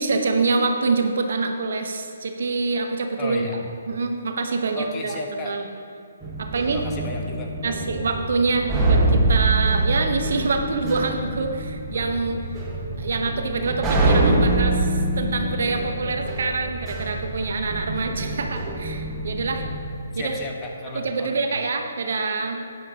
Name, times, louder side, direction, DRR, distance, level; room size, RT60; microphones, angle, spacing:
voice 1, 0.0-3.5 3.9-5.7 6.4-6.9 7.6-12.5 13.0-19.6 20.2-20.4 20.9-22.6, right 3 dB, 65° right, 5 dB, 1.0 m, -25 dB
voice 2, 3.2-3.7 4.7-5.5 6.7-7.8 20.1-21.6, left 2 dB, 20° left, 1 dB, 1.2 m, -34 dB
sound 1, 6.2-19.9, right 2 dB, 15° right, 1.5 m, -25 dB
12.5 x 9.4 x 2.9 m, 2.6 s
figure-of-eight pair, 140°, 0 cm